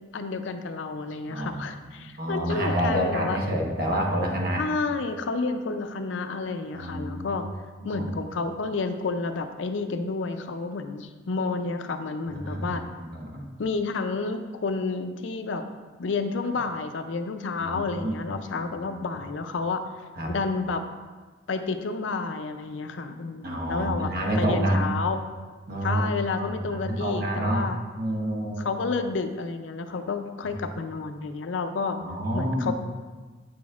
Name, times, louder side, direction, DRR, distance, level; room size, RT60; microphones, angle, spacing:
voice 1, 0.1-3.8 4.6-7.4 7.8-12.8 13.6-15.6 16.0-19.8 20.3-20.9 21.5-25.2 25.8-27.8 28.6-32.0 32.3-32.7, left 4 dB, 80° left, 8 dB, 0.5 m, -30 dB
voice 2, 1.3-1.7 2.0-4.6 6.7-7.4 7.8-8.1 12.4-13.5 17.6-18.2 18.9-19.0 20.2-20.3 23.4-24.9 25.7-27.6 28.0-28.7 32.0-32.7, right 1 dB, 55° right, -1 dB, 1.1 m, -28 dB
7.7 x 6.1 x 2.4 m, 1.4 s
head